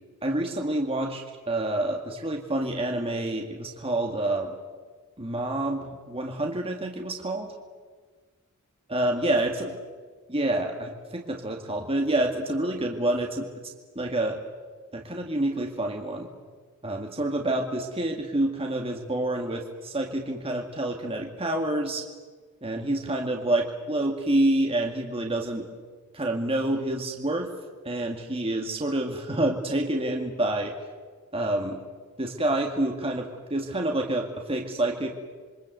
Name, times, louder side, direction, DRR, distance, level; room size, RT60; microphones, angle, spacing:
voice 1, 0.2-4.6 5.2-7.5 8.9-9.7 10.3-13.5 14.0-14.4 14.9-16.3 16.8-22.0 22.6-25.7 26.1-27.5 27.8-30.7 31.3-31.8 32.2-35.1, right 1 dB, 25° right, 1 dB, 2.1 m, -28 dB
27.5 x 23.5 x 8.0 m, 1.5 s
head